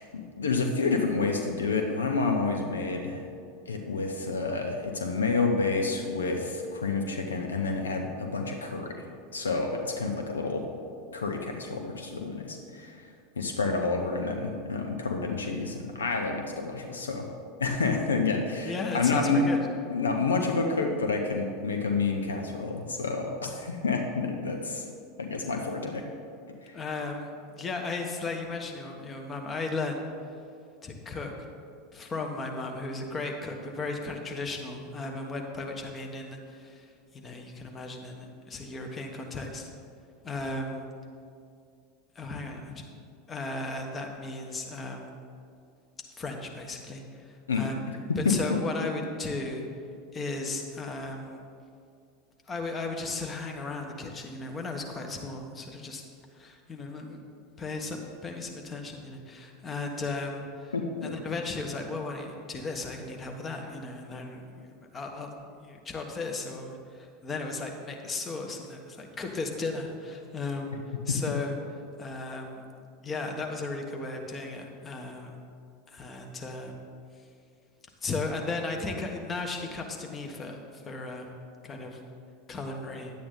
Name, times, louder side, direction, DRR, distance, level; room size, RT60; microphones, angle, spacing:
voice 1, 0.0-3.2 3.7-8.9 9.3-10.6 11.1-13.1 13.4-17.2 17.6-19.4 19.9-24.8 25.2-26.0 26.6-26.7 47.5-47.6 48.1-48.6 60.7-61.1, left 4 dB, 80° left, 3 dB, 0.8 m, -29 dB
voice 2, 18.7-19.6 26.7-30.0 30.8-31.4 31.9-39.7 40.2-40.9 42.1-42.9 43.3-45.1 46.2-47.8 48.2-49.7 50.1-51.4 52.5-56.0 56.3-57.2 57.6-60.7 61.0-64.7 64.9-70.8 71.0-71.6 72.0-72.6 73.0-75.4 75.9-76.8 78.0-81.3 81.6-82.0 82.5-83.1, left 3 dB, 25° left, 2 dB, 1.3 m, -35 dB
10.5 x 8.6 x 4.0 m, 2.4 s
figure-of-eight pair, 85°, 0 cm